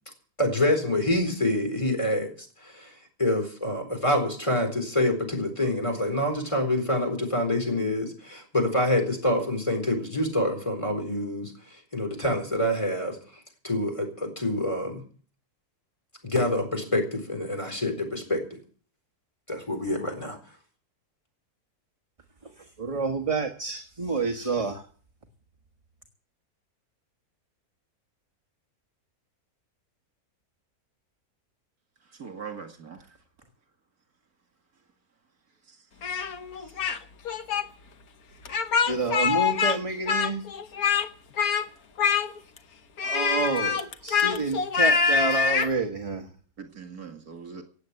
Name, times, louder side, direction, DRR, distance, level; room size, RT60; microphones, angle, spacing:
voice 1, 0.4-2.3 2.6-2.9 3.2-11.5 11.9-13.2 13.6-15.0 16.2-18.6 19.5-20.4, left 1 dB, 20° left, 4.2 m, -26 dB
voice 2, 22.4-24.9 38.9-40.4 43.0-46.3, right 3 dB, 25° right, 1.3 m, -29 dB
voice 3, 32.2-33.1 46.6-47.6, right 6 dB, 75° right, 2.6 m, -41 dB
Speech, 36.0-37.0 37.3-37.6 38.5-39.8 40.1-41.1 41.4-41.7 42.0-42.6 43.0-45.7, left 6 dB, 75° left, 1.5 m, -25 dB
17.5 x 8.2 x 8.2 m
omnidirectional pair, 1.6 m